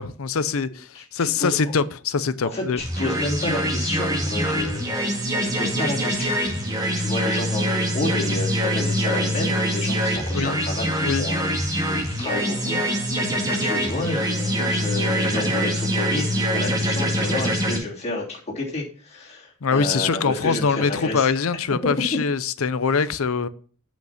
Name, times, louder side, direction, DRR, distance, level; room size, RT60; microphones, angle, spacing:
voice 1, 0.0-0.9 1.1-2.8 10.3-10.6 11.0-11.3 19.6-23.5, left 5 dB, 75° left, 0.6 m, -23 dB
voice 2, 0.9-1.5 2.4-6.3 6.9-11.4 11.7-13.1 13.5-21.4 22.1-22.2, left 2 dB, 30° left, 2.9 m, -30 dB
sound 1, 2.8-17.8, equal, 20° right, 2.1 m, -24 dB
8.1 x 5.2 x 5.8 m
head